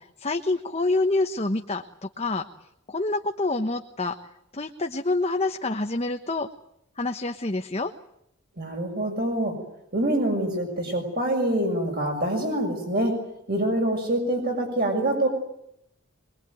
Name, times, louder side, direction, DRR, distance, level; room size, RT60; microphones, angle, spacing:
voice 1, 0.0-2.5 2.9-4.2 4.5-6.5 7.0-7.9, left 2 dB, 30° left, 5 dB, 1.2 m, -27 dB
voice 2, 8.6-9.5 9.9-13.2 13.5-15.3, right 1 dB, 45° right, 3 dB, 6.4 m, -25 dB
23.5 x 23.0 x 9.3 m, 0.79 s
head